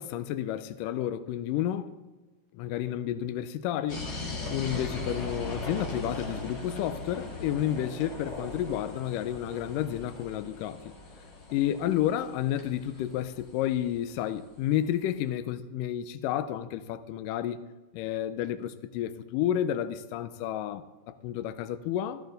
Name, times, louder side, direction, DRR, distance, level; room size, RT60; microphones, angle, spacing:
voice 1, 0.0-1.9 2.5-4.1 4.5-11.0 11.5-17.6 17.9-22.2, left 11 dB, 80° left, 2.1 m, -31 dB
sound 1, 3.9-14.6, left 2 dB, 35° left, 2.5 m, -39 dB
15.5 x 13.0 x 3.9 m
omnidirectional pair, 4.0 m